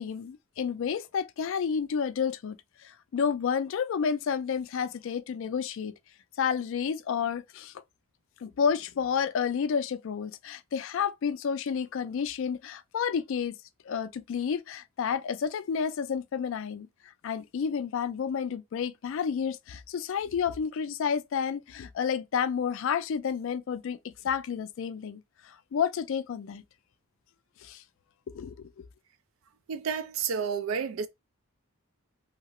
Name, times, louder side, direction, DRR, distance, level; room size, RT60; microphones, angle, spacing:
voice 1, 0.0-2.6 2.8-5.9 6.4-7.7 8.4-13.6 13.9-24.0 24.2-26.6 27.6-27.8 28.3-28.8, left 7 dB, 60° left, 0.3 m, -30 dB
voice 2, 29.7-31.1, right 6 dB, 65° right, 0.4 m, -30 dB
2.8 x 2.3 x 2.9 m
head